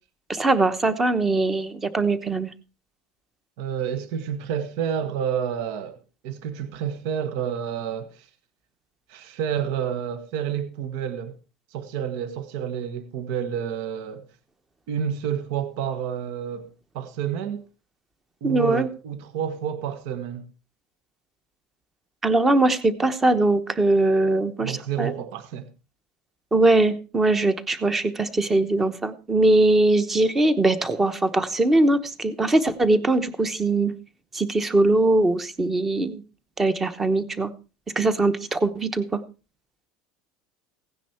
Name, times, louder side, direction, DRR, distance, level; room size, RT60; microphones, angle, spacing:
voice 1, 0.3-2.5 18.4-18.9 22.2-25.1 26.5-33.9 34.3-36.2 36.6-37.5 38.0-39.2, right 2 dB, 10° right, 1.0 m, -21 dB
voice 2, 3.6-6.0 6.2-8.3 9.1-11.4 11.7-14.3 14.9-17.7 18.4-20.5 24.6-25.7, right 8 dB, 60° right, 1.4 m, -29 dB
16.5 x 10.0 x 4.4 m
cardioid pair, 175°, 2 cm